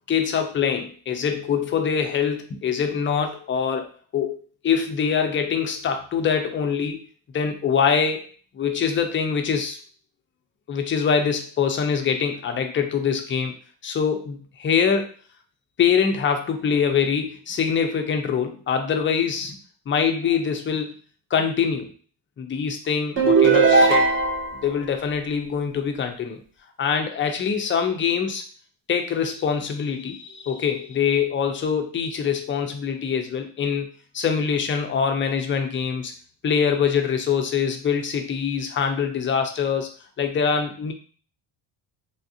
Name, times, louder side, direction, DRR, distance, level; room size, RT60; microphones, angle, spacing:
voice 1, 0.1-4.4 4.6-7.1 7.3-9.8 10.7-13.6 13.8-15.1 15.8-19.6 19.9-21.0 21.3-21.9 22.4-24.1 24.6-26.4 26.8-28.4 28.9-33.9 34.1-36.1 36.4-39.9 40.2-40.9, left 6 dB, 30° left, 5 dB, 0.3 m, -24 dB
sound 1, 23.2-24.6, right 4 dB, 25° right, 0.6 m, -17 dB
3.4 x 2.4 x 2.6 m, 0.40 s
cardioid pair, 125°, 47 cm